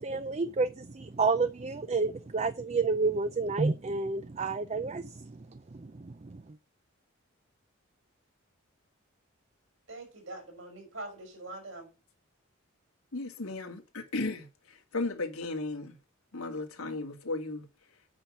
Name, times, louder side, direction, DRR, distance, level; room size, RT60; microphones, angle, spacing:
voice 1, 0.0-6.6, right 4 dB, 30° right, 0.5 m, -30 dB
voice 2, 9.9-11.9, right 2 dB, 65° right, 5.0 m, -43 dB
voice 3, 13.1-16.0 16.3-17.7, left 2 dB, 90° left, 2.3 m, -35 dB
8.7 x 5.8 x 7.3 m
head